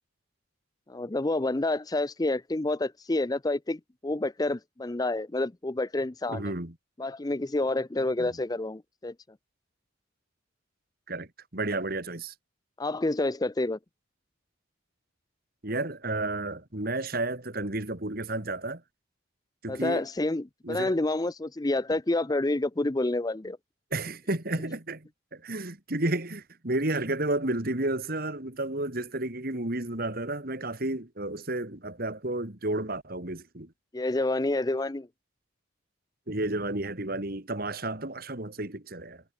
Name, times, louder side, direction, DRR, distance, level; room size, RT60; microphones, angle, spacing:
voice 1, 0.9-6.5 7.0-9.1 12.8-13.8 19.7-23.6 33.9-35.1, left 2 dB, 20° left, 0.5 m, -28 dB
voice 2, 6.3-6.7 8.2-8.3 11.1-12.3 15.6-18.8 19.6-20.0 20.6-20.9 23.9-33.7 36.3-39.2, right 2 dB, 50° right, 2.6 m, -32 dB
head